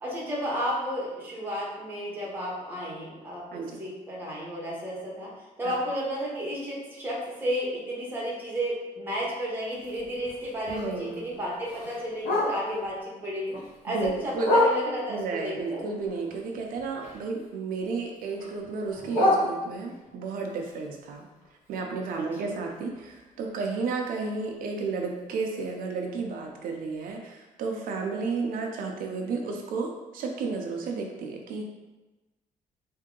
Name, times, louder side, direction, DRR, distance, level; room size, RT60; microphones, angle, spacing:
voice 1, 0.0-5.3 5.6-13.6 13.8-15.9 22.2-22.4, equal, 15° right, -5 dB, 1.0 m, -32 dB
Bark, 9.7-12.9 13.3-15.2 15.7-17.5 17.8-20.1 20.5-24.4 24.8-24.9 25.2-25.6 26.0-26.1 26.4-26.5 27.0-27.1, left 1 dB, 85° left, 1.1 m, -31 dB
voice 2, 10.7-11.3 13.9-14.5 15.1-21.3 21.7-31.6, right 4 dB, 90° right, 1 dB, 0.6 m, -32 dB
3.6 x 2.7 x 3.7 m, 1.1 s
cardioid pair, 175°, 14 cm